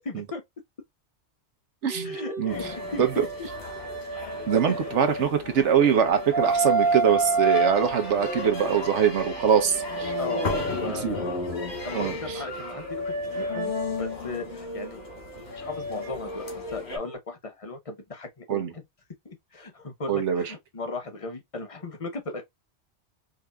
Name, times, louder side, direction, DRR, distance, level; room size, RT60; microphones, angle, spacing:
voice 1, 0.1-0.4 2.0-3.5 4.7-4.8 10.2-11.3 11.8-13.7 14.0-18.8 19.2-22.4, left 3 dB, 30° left, 1.0 m, -37 dB
voice 2, 1.8-2.5 3.0-3.2 4.5-10.1 10.9-11.2 11.9-12.1 18.5-18.7 20.1-20.4, right 8 dB, 85° right, 1.2 m, -23 dB
sound 1, 1.9-5.5 5.9-11.1 11.5-17.1, right 3 dB, 50° right, 1.1 m, -30 dB
sound 2, 2.5-17.0, left 4 dB, 70° left, 1.7 m, -37 dB
4.8 x 2.7 x 2.2 m
omnidirectional pair, 1.2 m